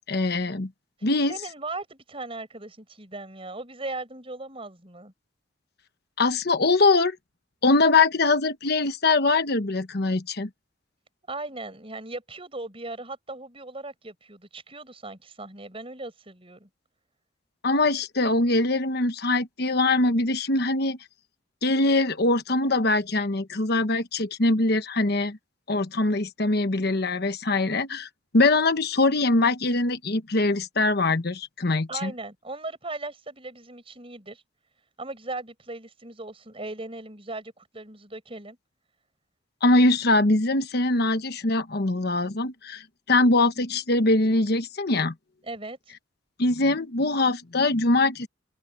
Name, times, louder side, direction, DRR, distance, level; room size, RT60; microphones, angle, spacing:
voice 1, 0.1-0.7 1.0-1.3 6.2-7.2 7.6-10.5 17.6-21.0 21.6-25.4 25.7-28.1 28.3-32.1 39.6-45.1 46.4-48.3, left 2 dB, 55° left, 1.2 m, -22 dB
voice 2, 1.3-5.1 11.3-16.7 31.9-34.4 35.0-38.6 45.4-45.9, right 2 dB, 30° right, 6.5 m, -38 dB
open air
head